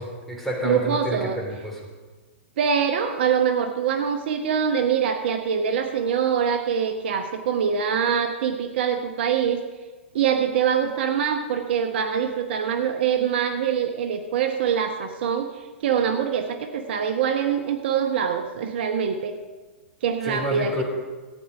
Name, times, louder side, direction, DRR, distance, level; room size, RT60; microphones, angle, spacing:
voice 1, 0.0-1.8 20.2-20.8, equal, ahead, -2 dB, 3.5 m, -29 dB
voice 2, 0.6-1.4 2.6-9.6 10.1-19.4 20.0-20.8, right 7 dB, 60° right, 6 dB, 1.0 m, -24 dB
14.5 x 9.5 x 4.8 m, 1.3 s
hypercardioid pair, 110°, 7 cm